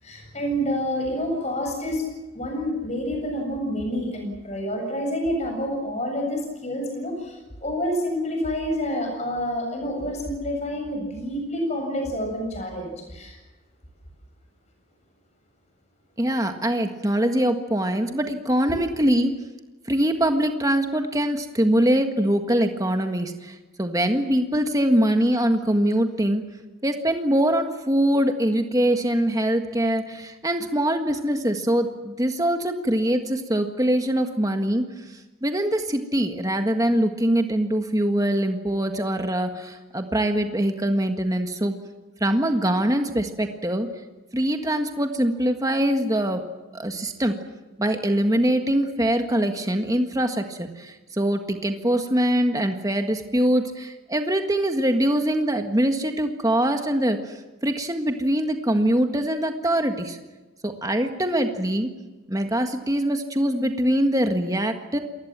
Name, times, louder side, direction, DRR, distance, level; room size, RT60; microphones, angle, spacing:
voice 1, 0.0-2.1 2.3-13.4 18.7-18.8, equal, 35° left, 3 dB, 7.4 m, -28 dB
voice 2, 16.2-19.3 19.9-26.4 26.8-34.8 35.4-41.8 42.2-43.9 44.3-46.4 46.7-47.4 47.8-57.4 57.6-60.2 60.6-61.9 62.3-65.0, right 1 dB, 15° right, 6 dB, 1.6 m, -23 dB
27.5 x 20.0 x 7.5 m, 1.1 s
head